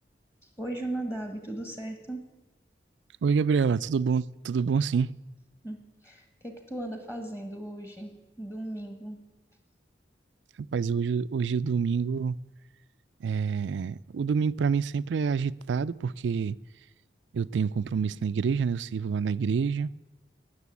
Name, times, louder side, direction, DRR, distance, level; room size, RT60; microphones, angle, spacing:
voice 1, 0.6-2.2 5.6-8.1 8.4-9.2, right 1 dB, 15° left, 1.5 m, -37 dB
voice 2, 3.2-5.1 10.7-12.4 13.2-16.6 17.3-19.9, right 6 dB, 85° right, 0.4 m, -27 dB
18.0 x 6.8 x 8.3 m
head